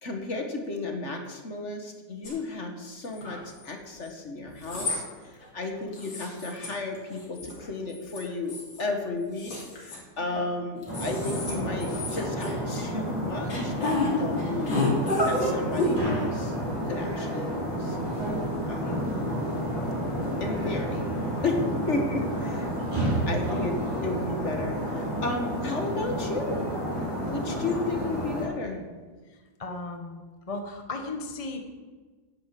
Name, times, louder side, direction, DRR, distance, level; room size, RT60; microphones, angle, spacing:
voice 1, 0.0-14.9 15.2-16.5 16.9-18.0 18.7-19.4 20.4-21.1 21.4-21.6 21.9-22.7 23.3-26.7 27.2-28.8, left 3 dB, 40° left, 4 dB, 1.6 m, -33 dB
sound 1, 2.2-2.3 3.0-3.6 4.5-5.0 5.4-5.5 5.9-6.7 7.0-7.6 7.9-8.8 9.4-10.4 10.8-11.5 11.8-12.6 13.5-14.1 14.4-16.0, left 2 dB, 80° left, 3.7 m, -30 dB
sound 2, 10.9-28.4, right 1 dB, 15° right, 5.2 m, -30 dB
voice 2, 18.8-19.2 22.6-22.9 27.5-28.2 29.6-30.2 30.5-31.7, left 2 dB, 20° left, 4 dB, 1.1 m, -37 dB
10.0 x 10.0 x 7.6 m, 1.4 s
omnidirectional pair, 2.0 m